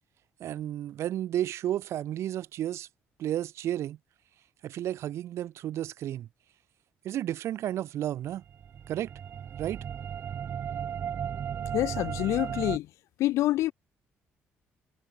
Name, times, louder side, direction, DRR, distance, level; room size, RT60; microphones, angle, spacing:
voice 1, 0.4-2.9 3.2-4.0 4.6-6.3 7.0-8.4 8.9-9.1 9.6-9.8, right 12 dB, 70° right, 3.9 m, -32 dB
sound 1, 8.4-12.8, right 8 dB, 55° right, 2.3 m, -35 dB
voice 2, 11.7-12.9 13.2-13.7, left 15 dB, 85° left, 2.4 m, -26 dB
cardioid pair, 105°, 5 cm